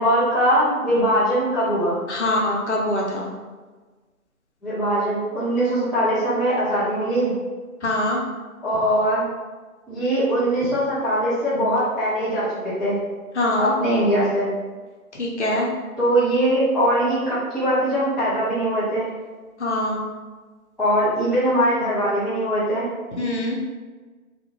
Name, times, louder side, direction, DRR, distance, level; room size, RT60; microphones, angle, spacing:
voice 1, 0.0-2.0 4.6-7.3 8.6-9.3 9.9-13.0 13.6-14.5 16.0-19.1 20.8-22.9, equal, ahead, -11 dB, 0.3 m, -21 dB
voice 2, 2.1-3.3 7.8-8.2 13.3-13.7 15.2-15.7 19.6-20.0 23.2-23.6, left 1 dB, 50° left, -2 dB, 0.6 m, -23 dB
2.1 x 2.1 x 2.9 m, 1.3 s
hypercardioid pair, 160°, 45 cm